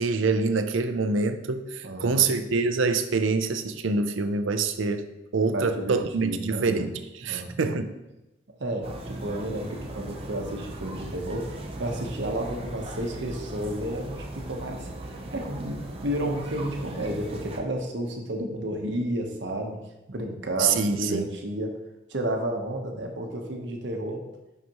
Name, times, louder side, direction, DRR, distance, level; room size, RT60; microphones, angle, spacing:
voice 1, 0.0-7.9 20.6-21.3, right 4 dB, 90° right, 10 dB, 0.5 m, -25 dB
voice 2, 1.8-2.3 5.5-6.9 7.2-7.7 8.6-14.9 15.3-19.8 20.1-21.7 22.1-24.3, right 1 dB, 70° right, 2 dB, 1.0 m, -31 dB
sound 1, 8.8-17.6, right 1 dB, 30° right, 0.6 m, -38 dB
6.2 x 5.8 x 2.9 m, 0.98 s
head